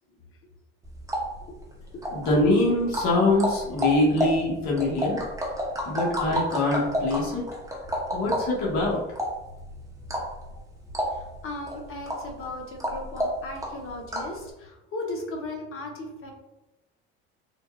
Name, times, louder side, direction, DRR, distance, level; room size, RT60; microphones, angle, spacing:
sound 1, 0.8-14.4, equal, 10° right, 0.7 m, -31 dB
voice 1, 2.1-5.2 5.9-7.4 8.1-9.0, left 2 dB, 60° left, -4 dB, 1.3 m, -24 dB
voice 2, 11.1-16.3, left 2 dB, 45° left, 2 dB, 0.9 m, -37 dB
3.9 x 2.2 x 2.2 m, 0.99 s
hypercardioid pair, 70°, 32 cm